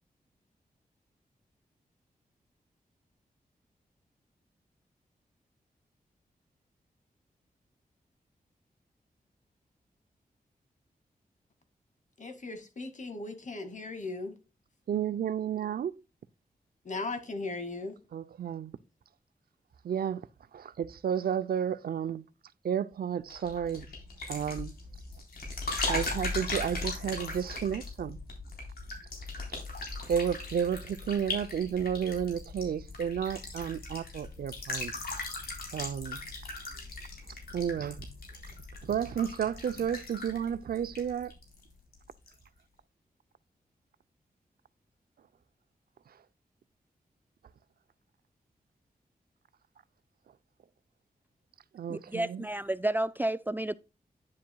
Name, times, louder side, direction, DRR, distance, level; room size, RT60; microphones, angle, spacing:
voice 1, 12.2-14.4 16.8-18.0, left 3 dB, 55° left, 2.1 m, -37 dB
voice 2, 14.9-16.0 18.1-18.8 19.8-22.3 22.6-23.9 24.3-24.7 25.9-28.2 29.5-29.6 30.1-34.9 35.7-36.3 37.3-38.1 38.4-38.5 38.8-41.3 46.1-46.2 51.7-52.5, right 8 dB, 85° right, 0.5 m, -32 dB
sound 1, 23.3-41.6 41.9-42.3, left 3 dB, 85° left, 3.8 m, -38 dB
voice 3, 51.9-53.7, right 1 dB, 10° right, 0.4 m, -31 dB
10.5 x 7.6 x 2.2 m
cardioid pair, 70°, 15 cm